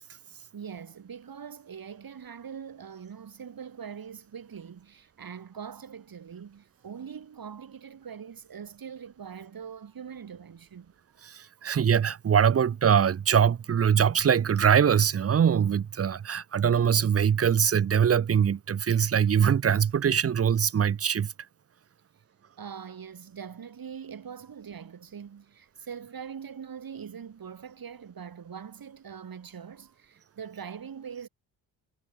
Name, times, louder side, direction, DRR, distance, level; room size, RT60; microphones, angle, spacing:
voice 1, 0.5-10.9 11.6-11.8 22.6-31.3, right 7 dB, 50° right, 6.4 m, -42 dB
voice 2, 11.3-21.3, right 8 dB, 30° right, 0.8 m, -23 dB
hypercardioid pair, 55°, 45 cm